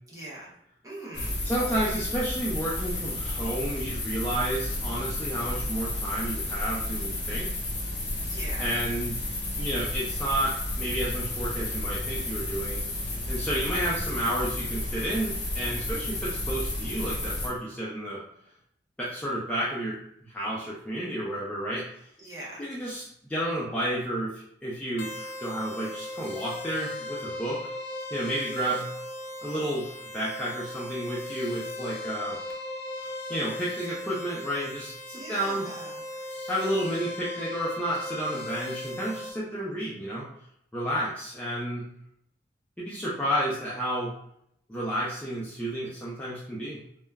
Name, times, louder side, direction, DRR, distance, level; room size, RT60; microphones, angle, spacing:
voice 1, 0.1-0.5 0.8-2.0 8.3-8.7 22.2-22.7 35.1-36.0, right 1 dB, 20° right, -6 dB, 0.7 m, -42 dB
sound 1, 1.1-17.5, left 1 dB, 45° left, 0.9 m, -32 dB
voice 2, 1.4-7.5 8.6-9.2 9.6-18.2 19.0-20.0 20.3-21.8 22.6-27.7 28.1-28.8 29.4-32.4 33.0-35.7 36.5-40.2 40.7-41.8 42.8-44.1 44.7-46.8, right 1 dB, 10° left, -7 dB, 0.4 m, -31 dB
sound 2, 25.0-39.3, left 1 dB, 85° left, 0.4 m, -37 dB
2.2 x 2.0 x 3.3 m, 0.73 s
head